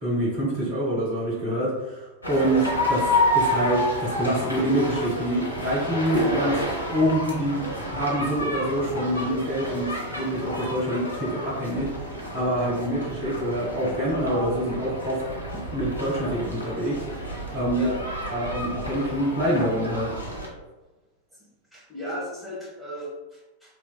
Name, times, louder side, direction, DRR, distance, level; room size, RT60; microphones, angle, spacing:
voice 1, 0.0-3.0 3.3-11.9 12.3-15.2 15.7-17.0 17.5-17.9 18.3-20.1, right 1 dB, 45° right, -5 dB, 1.3 m, -26 dB
sound 1, 2.2-20.5, left 1 dB, 85° left, 0.6 m, -29 dB
voice 2, 21.7-23.8, left 1 dB, 5° right, -7 dB, 1.2 m, -35 dB
2.9 x 2.7 x 2.2 m, 1.1 s
figure-of-eight pair, 90°, 0 cm